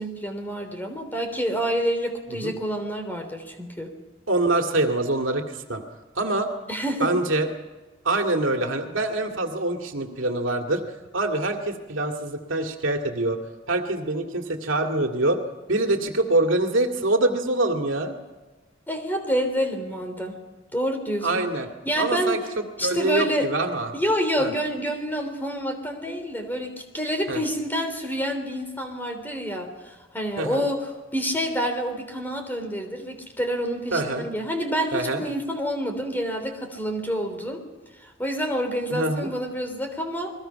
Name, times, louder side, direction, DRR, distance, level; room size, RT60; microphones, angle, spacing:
voice 1, 0.0-3.9 6.7-7.1 18.9-20.4 20.7-21.4 21.8-22.4 22.8-23.5 23.9-37.6 38.0-40.3, equal, 10° left, 5 dB, 3.3 m, -28 dB
voice 2, 4.3-5.8 6.2-6.5 7.0-7.5 8.0-10.8 11.1-13.4 13.7-15.4 15.7-18.1 21.2-21.7 22.0-23.9 24.4-24.5 27.3-27.4 30.4-30.7 33.9-34.3 34.9-35.2 38.9-39.3, right 2 dB, 80° right, 4 dB, 2.2 m, -25 dB
29.5 x 21.5 x 5.8 m, 1.2 s
head